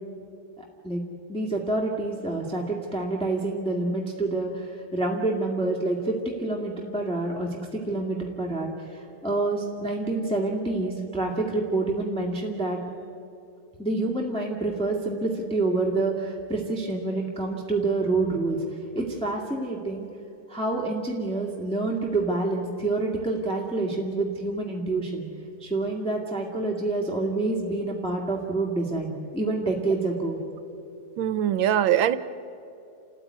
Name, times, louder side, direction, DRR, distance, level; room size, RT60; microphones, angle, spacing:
voice 1, 0.6-1.0 1.3-12.8 13.8-20.1 20.5-25.3 25.6-30.4, right 2 dB, 5° left, -2 dB, 2.0 m, -27 dB
voice 2, 31.2-32.2, right 10 dB, 75° right, 14 dB, 1.4 m, -22 dB
29.0 x 14.5 x 9.6 m, 2.7 s
omnidirectional pair, 2.3 m